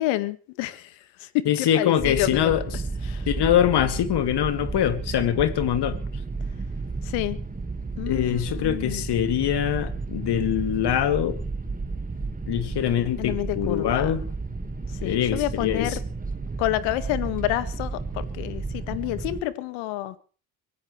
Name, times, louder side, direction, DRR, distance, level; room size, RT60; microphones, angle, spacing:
voice 1, 0.0-2.5 3.0-3.3 7.0-7.4 8.0-9.0 13.2-14.1 15.0-16.0 16.6-20.2, left 16 dB, 75° left, 1.8 m, -29 dB
voice 2, 1.5-2.6 3.3-6.0 8.1-11.4 12.5-14.2 15.0-16.0, left 10 dB, 55° left, 2.6 m, -23 dB
sound 1, 2.0-19.4, right 3 dB, 15° right, 1.8 m, -32 dB
24.5 x 17.0 x 3.3 m
hypercardioid pair, 70°, 47 cm